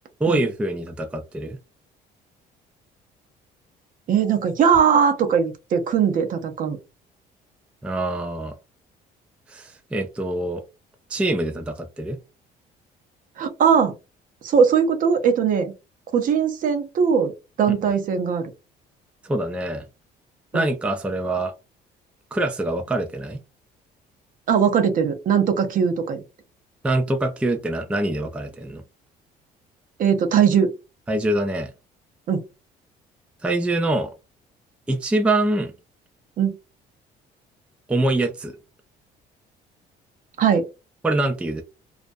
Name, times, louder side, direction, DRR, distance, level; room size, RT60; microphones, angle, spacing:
voice 1, 0.2-1.6 7.8-8.5 9.5-10.6 11.1-12.2 19.2-19.8 20.5-21.5 22.3-23.4 26.8-28.8 31.1-31.7 33.4-34.1 34.9-35.7 37.9-38.5 41.0-41.6, right 2 dB, 5° right, 0.4 m, -24 dB
voice 2, 4.1-6.8 13.4-13.9 14.4-15.7 16.1-17.3 17.6-18.5 20.5-20.7 24.5-26.2 30.0-30.7 32.3-32.4 36.4-36.6 40.4-40.7, right 7 dB, 55° right, 0.6 m, -20 dB
2.4 x 2.1 x 2.5 m
cardioid pair, 110°, 17 cm